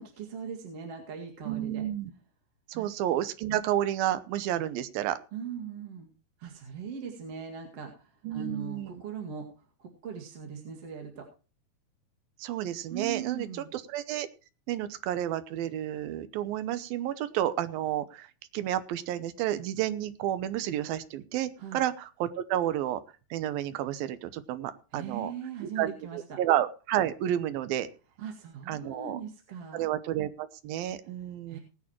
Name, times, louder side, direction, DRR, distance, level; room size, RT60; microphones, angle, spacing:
voice 1, 0.0-1.8 2.7-2.9 5.3-6.1 6.4-11.3 12.9-13.7 21.6-21.8 24.9-26.4 28.2-29.9 31.5-31.6, right 6 dB, 45° right, 1 dB, 2.7 m, -40 dB
voice 2, 1.5-2.1 2.7-5.2 8.2-9.0 12.4-13.5 13.7-14.3 14.7-18.3 18.5-23.0 23.3-25.3 25.6-27.9 28.7-29.2 29.7-31.6, right 12 dB, 80° right, 13 dB, 2.6 m, -31 dB
19.0 x 9.7 x 3.0 m, 0.34 s
omnidirectional pair, 4.4 m